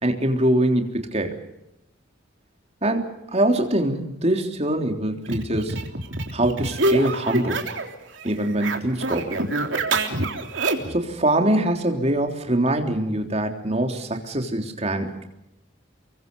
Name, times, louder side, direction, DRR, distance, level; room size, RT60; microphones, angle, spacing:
voice 1, 0.0-1.4 2.8-5.8 6.3-7.7 8.2-9.4 10.9-15.2, right 1 dB, 35° right, 4 dB, 3.5 m, -23 dB
sound 1, 5.3-7.9 8.2-11.0, right 2 dB, 80° right, 3.5 m, -26 dB
30.0 x 23.5 x 5.5 m, 0.89 s
head